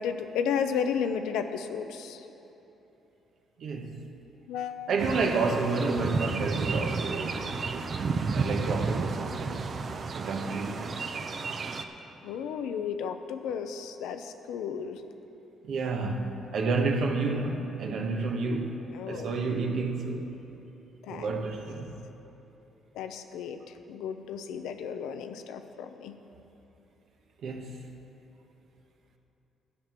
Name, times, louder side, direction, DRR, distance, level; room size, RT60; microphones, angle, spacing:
voice 1, 0.0-2.2 4.5-4.9 12.2-15.0 18.9-19.3 21.0-21.3 22.9-23.6 23.9-26.2, left 7 dB, 90° left, 8 dB, 0.6 m, -33 dB
voice 2, 3.6-4.0 4.9-9.7 10.1-11.0 15.6-20.3 21.1-22.0 27.4-27.8, right 3 dB, 70° right, 2 dB, 1.1 m, -30 dB
sound 1, 5.0-11.8, right 4 dB, 45° right, 0.7 m, -32 dB
12.0 x 5.9 x 8.8 m, 3.0 s
cardioid pair, 90°, 0 cm